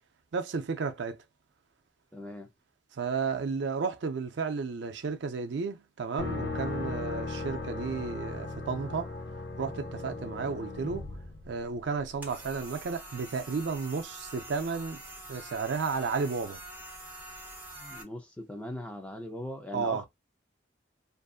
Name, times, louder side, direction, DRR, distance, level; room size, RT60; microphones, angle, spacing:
voice 1, 0.3-1.2 2.9-9.1 9.6-11.1 11.5-15.0 15.3-16.6 19.7-20.0, right 5 dB, 70° right, 0.4 m, -33 dB
voice 2, 2.1-2.5 17.7-20.1, left 1 dB, 5° left, 0.5 m, -40 dB
sound 1, 6.2-12.1, left 3 dB, 70° left, 0.7 m, -37 dB
sound 2, 12.2-18.0, right 1 dB, 10° right, 0.9 m, -45 dB
2.6 x 2.5 x 2.3 m
head